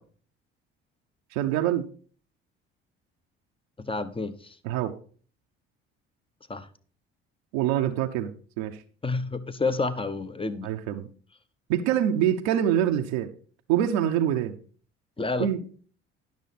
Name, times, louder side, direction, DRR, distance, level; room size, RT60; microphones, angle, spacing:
voice 1, 1.3-1.9 4.6-4.9 7.5-8.8 10.6-11.1 11.7-13.3 13.7-14.6 15.4-15.6, right 11 dB, 85° right, 0.8 m, -25 dB
voice 2, 3.8-4.5 6.5-6.7 9.0-10.7 15.2-15.5, left 3 dB, 20° left, 1.0 m, -29 dB
10.5 x 6.2 x 4.1 m
supercardioid pair, 65°, 30 cm